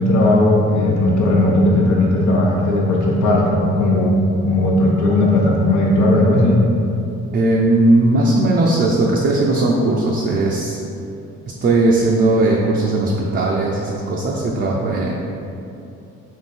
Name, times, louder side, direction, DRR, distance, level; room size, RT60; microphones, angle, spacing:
voice 1, 0.0-6.6, left 1 dB, 75° left, -3 dB, 0.9 m, -16 dB
voice 2, 7.3-10.8 11.6-15.1, right 2 dB, 40° right, -3 dB, 0.5 m, -17 dB
3.7 x 2.7 x 4.1 m, 2.7 s
cardioid pair, 90°, 30 cm